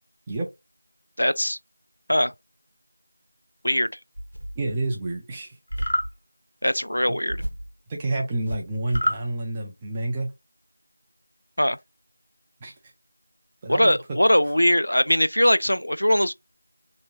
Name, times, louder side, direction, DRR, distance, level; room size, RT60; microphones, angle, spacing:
voice 1, 1.2-1.6 2.1-2.3 3.6-3.9 6.6-7.4 11.6-11.8 13.7-16.3, equal, 80° left, 0.3 m, -21 dB
sound 1, 4.1-4.7 5.7-6.2 7.3-7.7 8.5-9.2, equal, 55° right, 0.8 m, -33 dB
voice 2, 4.6-5.5 7.9-10.3 12.6-12.7 13.6-14.0, right 2 dB, 5° right, 0.3 m, -29 dB
sound 2, 5.7-6.1 8.9-9.2, left 1 dB, 35° left, 0.7 m, -26 dB
3.2 x 2.8 x 2.8 m
figure-of-eight pair, 175°, 0 cm